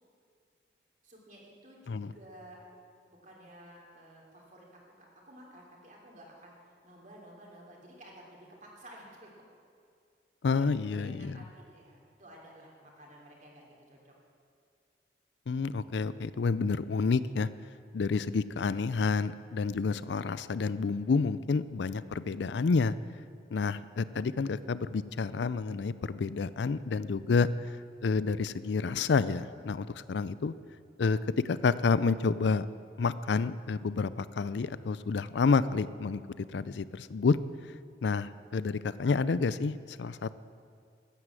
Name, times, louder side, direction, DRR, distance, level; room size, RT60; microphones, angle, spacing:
voice 1, 1.0-2.6 3.1-6.5 6.8-9.4 10.5-14.1, right 1 dB, 40° right, -2 dB, 2.9 m, -53 dB
voice 2, 10.4-11.4 15.5-17.5 17.9-23.0 23.5-27.5 28.0-30.5 31.0-32.7 33.0-37.4 38.0-40.3, left 4 dB, 75° left, 16 dB, 0.4 m, -29 dB
13.0 x 9.6 x 7.6 m, 2.3 s
head